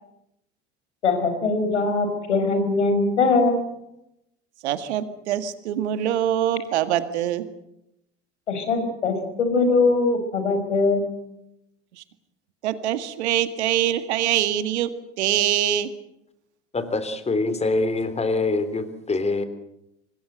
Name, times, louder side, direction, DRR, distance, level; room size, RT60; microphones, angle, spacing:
voice 1, 1.0-3.7 8.5-11.1, left 3 dB, 80° left, 7 dB, 5.5 m, -21 dB
voice 2, 4.6-7.4 12.0-12.1 12.6-14.9 15.2-15.9, right 11 dB, 70° right, 11 dB, 2.0 m, -24 dB
voice 3, 16.7-19.4, left 3 dB, 20° left, 12 dB, 3.3 m, -24 dB
26.0 x 20.0 x 8.0 m, 0.85 s
figure-of-eight pair, 80°, 35 cm